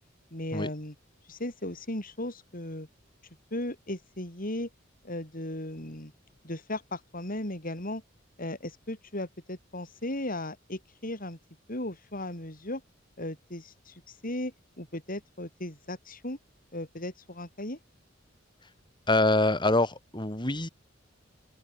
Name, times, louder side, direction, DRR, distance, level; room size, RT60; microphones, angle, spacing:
voice 1, 0.3-0.9 1.3-2.9 3.5-4.7 5.0-6.1 6.4-8.0 8.4-11.4 11.7-12.8 13.2-16.4 16.7-17.8, left 1 dB, 45° left, 7.3 m, -36 dB
voice 2, 19.1-20.7, left 2 dB, 25° left, 5.9 m, -25 dB
open air
head